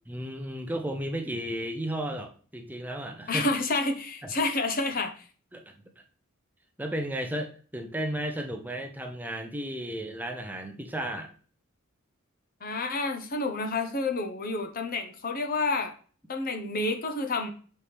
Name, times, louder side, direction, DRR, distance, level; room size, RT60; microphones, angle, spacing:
voice 1, 0.1-3.5 4.2-4.3 5.5-5.6 6.8-11.3, right 1 dB, 10° right, 4 dB, 0.6 m, -34 dB
voice 2, 3.3-5.1 12.6-15.9 16.3-17.5, left 3 dB, 45° left, 5 dB, 0.8 m, -29 dB
6.8 x 4.3 x 3.3 m, 0.42 s
head